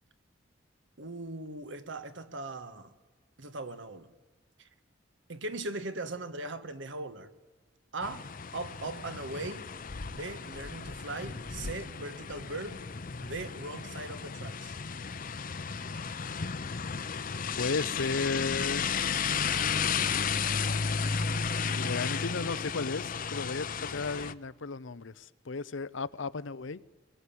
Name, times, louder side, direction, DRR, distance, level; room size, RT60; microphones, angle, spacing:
voice 1, 1.0-2.9 3.4-4.1 4.6-4.7 5.3-7.3 7.9-9.7 10.1-12.8 13.2-14.7, right 2 dB, 70° right, 1.5 m, -39 dB
sound 1, 8.0-24.3, left 6 dB, 45° left, 0.7 m, -33 dB
voice 2, 17.6-18.9 21.7-26.8, left 4 dB, 85° left, 0.8 m, -34 dB
24.5 x 21.0 x 8.7 m
head